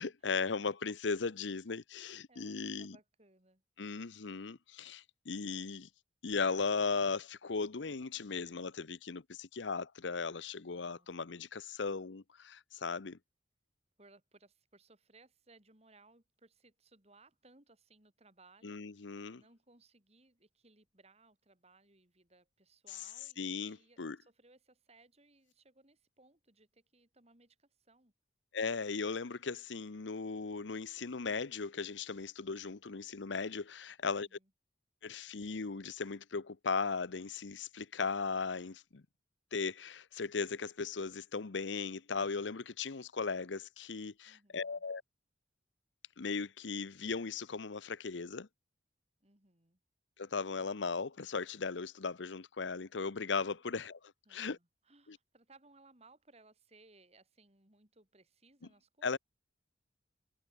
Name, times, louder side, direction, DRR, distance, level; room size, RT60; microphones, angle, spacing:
voice 1, 0.0-3.0 3.8-5.9 6.2-13.2 18.6-19.4 22.9-23.0 23.4-24.2 28.5-34.3 35.0-39.0 39.5-45.0 46.2-48.5 50.2-54.6 55.1-55.2 59.0-59.2, left 4 dB, 80° left, 0.8 m, -37 dB
voice 2, 2.3-3.6 10.7-11.4 14.0-28.1 34.0-34.5 44.2-44.8 49.2-49.8 54.3-59.2, right 3 dB, 35° right, 4.0 m, -64 dB
head